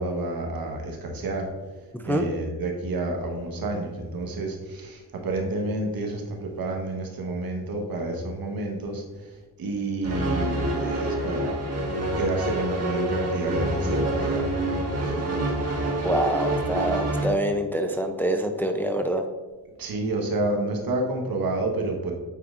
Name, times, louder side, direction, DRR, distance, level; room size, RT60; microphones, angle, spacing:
voice 1, 0.0-1.5 2.0-11.5 11.9-15.3 19.8-22.1, right 2 dB, 65° right, 2 dB, 1.3 m, -30 dB
voice 2, 1.9-2.2 16.0-19.2, right 1 dB, 5° left, 5 dB, 0.5 m, -25 dB
sound 1, 10.0-17.3, right 1 dB, 40° right, 1.7 m, -27 dB
8.7 x 4.6 x 2.5 m, 1.3 s
cardioid pair, 65°, 39 cm